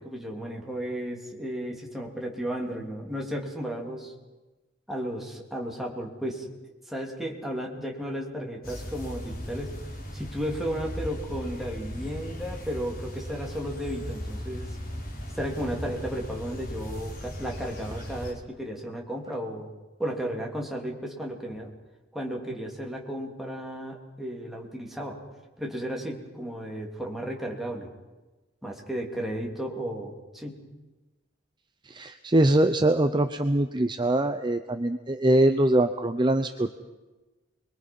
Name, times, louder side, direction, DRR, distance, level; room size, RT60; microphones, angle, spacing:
voice 1, 0.0-4.1 4.9-6.5 6.9-9.8 10.1-14.8 15.3-19.7 20.0-21.7 22.1-25.2 25.6-27.9 28.6-30.6, equal, ahead, -1 dB, 3.2 m, -34 dB
sound 1, 8.6-18.3, equal, 50° left, 4.2 m, -37 dB
voice 2, 31.9-36.7, right 1 dB, 25° right, 8 dB, 0.7 m, -23 dB
28.0 x 22.5 x 5.5 m, 1.2 s
head